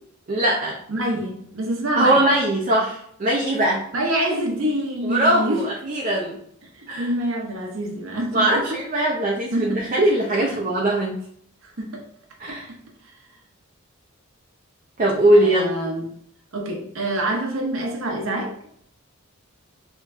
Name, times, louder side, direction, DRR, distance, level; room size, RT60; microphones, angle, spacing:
voice 1, 0.3-0.8 2.0-3.8 5.0-6.4 6.9-7.1 8.3-11.2 12.4-12.7 15.0-15.7, right 1 dB, 40° right, -2 dB, 0.5 m, -20 dB
voice 2, 0.9-2.2 3.9-5.7 6.6-8.8 9.5-9.8 10.4-10.6 11.6-12.0 12.5-12.6 13.0-13.1 15.3-16.0 16.5-18.5, right 1 dB, 70° right, 2 dB, 0.8 m, -26 dB
4.5 x 2.9 x 2.5 m, 0.68 s
head